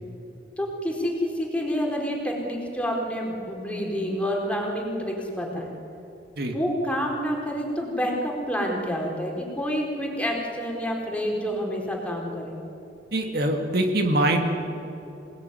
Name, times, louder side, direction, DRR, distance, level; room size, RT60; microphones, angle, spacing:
voice 1, 0.6-5.7 6.5-12.5, equal, 5° left, 0 dB, 4.3 m, -28 dB
voice 2, 13.1-14.4, right 1 dB, 60° right, 3 dB, 2.4 m, -23 dB
27.0 x 18.5 x 9.8 m, 3.0 s
head